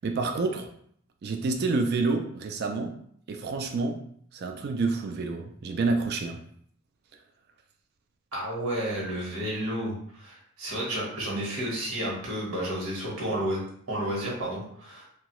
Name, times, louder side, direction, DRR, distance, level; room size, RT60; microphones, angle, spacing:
voice 1, 0.0-0.7 1.2-3.0 3.3-4.0 4.3-6.4, right 3 dB, 45° right, 4 dB, 0.3 m, -28 dB
voice 2, 8.3-13.6 13.9-15.1, right 1 dB, 80° right, -3 dB, 1.1 m, -31 dB
2.8 x 2.3 x 2.9 m, 0.64 s
head